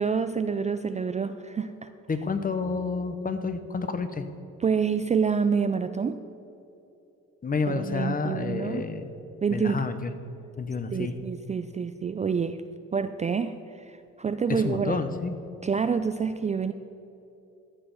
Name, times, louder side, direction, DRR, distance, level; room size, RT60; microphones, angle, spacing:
voice 1, 0.0-1.9 4.6-6.2 7.7-8.8 9.4-9.9 10.9-12.6 12.9-15.0 15.6-16.7, right 6 dB, 25° right, 10 dB, 0.4 m, -27 dB
voice 2, 2.1-4.2 7.4-9.1 9.5-10.1 10.6-11.2 14.5-15.4, left 4 dB, 30° left, 10 dB, 0.9 m, -29 dB
14.5 x 7.0 x 5.4 m, 2.9 s
cardioid pair, 90°, 30 cm